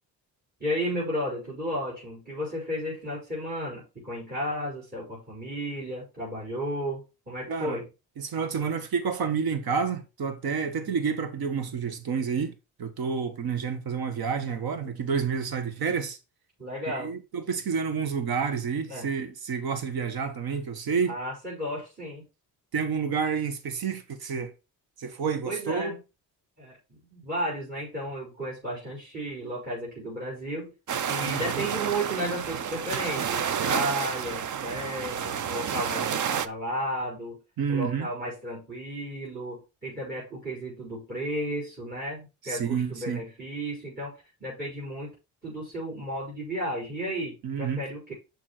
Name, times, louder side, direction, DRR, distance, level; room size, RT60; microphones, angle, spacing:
voice 1, 0.6-7.9 16.6-17.1 18.9-19.1 21.0-22.2 25.5-26.0 26.6-30.7 31.1-37.4 37.7-45.1 45.4-48.1, equal, 25° right, 5.5 m, -33 dB
voice 2, 7.5-7.8 8.2-12.5 12.8-16.2 16.9-21.1 22.7-24.5 25.0-25.9 31.2-31.6 37.6-38.1 42.4-43.2 47.4-47.8, right 6 dB, 65° right, 1.6 m, -29 dB
sound 1, 30.9-36.5, right 8 dB, 50° right, 0.7 m, -30 dB
7.6 x 5.6 x 4.4 m
cardioid pair, 90°, 39 cm